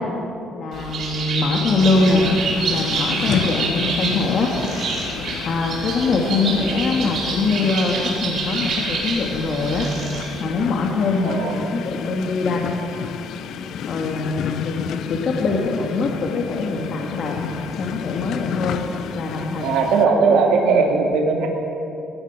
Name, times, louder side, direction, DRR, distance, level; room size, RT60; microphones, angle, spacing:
voice 1, 0.5-2.3 2.5-4.5 4.9-5.0 5.4-9.9 10.4-12.7 13.9-14.8 15.1-17.5 17.8-18.8 19.1-19.6 20.1-20.3 20.7-20.9, left 3 dB, 50° left, 0 dB, 2.6 m, -23 dB
Bird, 0.7-10.4, right 3 dB, 50° right, 5.4 m, -27 dB
sound 1, 1.9-20.1, left 8 dB, 70° left, 0.9 m, -32 dB
voice 2, 11.2-11.6 15.4-15.6 19.6-21.5, right 5 dB, 85° right, 0 dB, 2.7 m, -19 dB
21.5 x 18.0 x 7.6 m, 2.7 s
cardioid pair, 135°, 0 cm